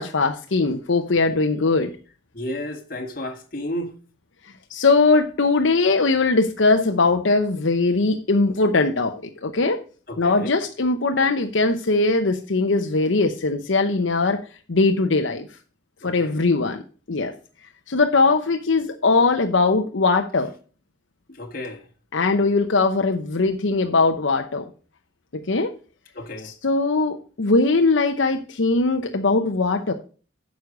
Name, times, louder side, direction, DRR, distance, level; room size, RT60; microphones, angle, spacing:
voice 1, 0.0-1.9 4.7-9.1 9.4-9.8 10.2-14.4 14.7-15.5 16.0-16.8 17.1-17.3 17.9-20.5 22.1-24.6 25.3-25.7 26.4-29.9, left 3 dB, 80° left, 0.9 m, -20 dB
voice 2, 2.3-3.9 10.1-10.6 16.0-16.4 21.3-21.8 26.1-26.5, left 1 dB, 45° left, 1.9 m, -32 dB
9.4 x 6.4 x 5.3 m
head